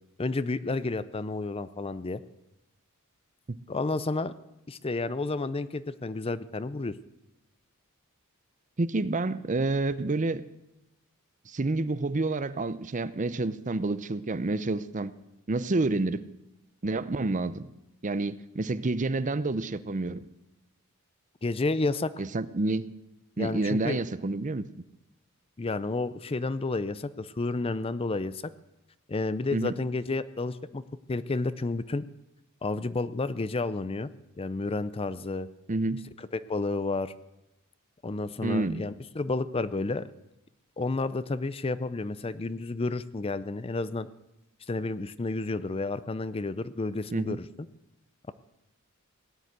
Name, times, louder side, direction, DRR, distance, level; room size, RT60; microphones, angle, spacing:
voice 1, 0.2-2.2 3.7-4.3 4.7-7.0 21.4-22.1 23.4-24.0 25.6-28.4 29.1-30.8 31.1-32.1 32.6-34.1 34.4-35.5 36.2-37.1 38.0-40.1 40.8-44.1 44.7-47.5, left 3 dB, 25° left, 15 dB, 0.5 m, -31 dB
voice 2, 8.8-10.4 11.5-15.1 15.5-16.3 16.8-17.7 18.0-20.2 22.2-22.9 23.4-24.7 29.5-29.8 35.7-36.0 38.4-38.8 47.1-47.4, right 2 dB, 35° right, 15 dB, 0.6 m, -29 dB
17.5 x 10.0 x 8.0 m, 0.92 s
head